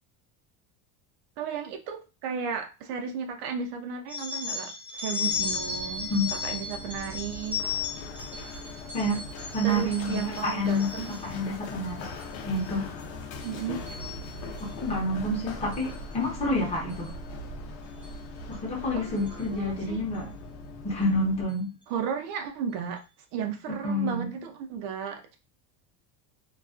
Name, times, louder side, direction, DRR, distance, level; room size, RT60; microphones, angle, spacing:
voice 1, 1.4-7.6 9.6-11.2 13.4-13.8 18.9-20.0 21.9-23.0 23.3-25.4, right 7 dB, 60° right, 4 dB, 0.6 m, -34 dB
sound 1, 4.1-11.4 11.9-12.3 12.6-13.0 13.4-14.8 15.7-16.0 16.9-17.1 18.0-18.1 18.5-18.6 19.2-19.4, left 5 dB, 5° right, 0.3 m, -35 dB
Run, 5.3-21.4, left 2 dB, 65° left, 0.6 m, -40 dB
voice 2, 9.5-12.1 12.4-12.9 14.6-17.1 18.5-20.3 20.8-21.8 23.7-24.3, left 1 dB, 15° left, -3 dB, 0.7 m, -28 dB
2.3 x 2.2 x 2.4 m, 0.30 s
cardioid pair, 165°, 42 cm